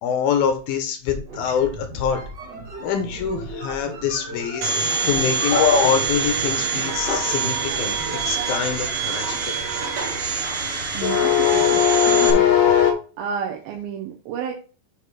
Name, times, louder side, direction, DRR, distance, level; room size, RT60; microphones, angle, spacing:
voice 1, 0.0-2.2 2.8-8.0 8.3-9.6, left 7 dB, 80° left, 6 dB, 2.8 m, -25 dB
sound 1, 1.2-9.0, right 3 dB, 75° right, 1.0 m, -36 dB
Domestic sounds home sounds, 4.6-12.3, right 5 dB, 55° right, 1.7 m, -25 dB
sound 2, 5.4-12.9, left 8 dB, 65° left, 1.5 m, -20 dB
voice 2, 10.9-12.9 13.2-14.5, right 8 dB, 90° right, 0 dB, 2.7 m, -31 dB
8.9 x 3.1 x 4.8 m, 0.37 s
omnidirectional pair, 4.2 m